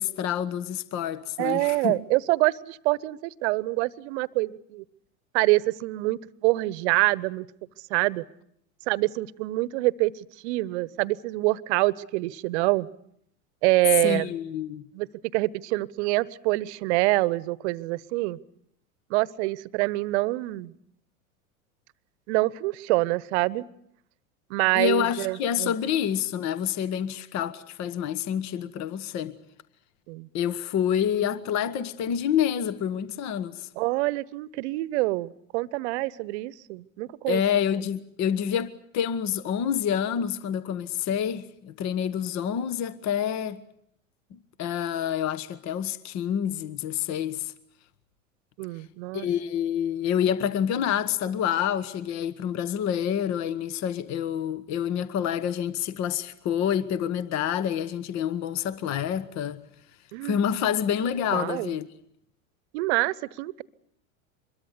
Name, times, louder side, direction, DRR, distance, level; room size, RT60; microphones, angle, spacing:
voice 1, 0.0-2.0 14.0-14.9 24.7-29.4 30.3-33.7 37.3-43.6 44.6-47.5 49.1-59.6 60.2-61.9, left 9 dB, 40° left, 1.3 m, -28 dB
voice 2, 1.4-4.8 5.3-7.4 7.9-8.2 8.9-10.1 10.4-12.9 13.6-14.3 14.9-15.1 15.3-18.4 19.1-20.7 22.3-23.6 24.5-25.7 30.1-30.3 33.8-37.4 48.6-49.3 60.1-60.4 61.3-61.7 62.7-63.6, right 20 dB, 55° right, 1.0 m, -26 dB
25.0 x 22.0 x 8.2 m
hypercardioid pair, 85°, 40 cm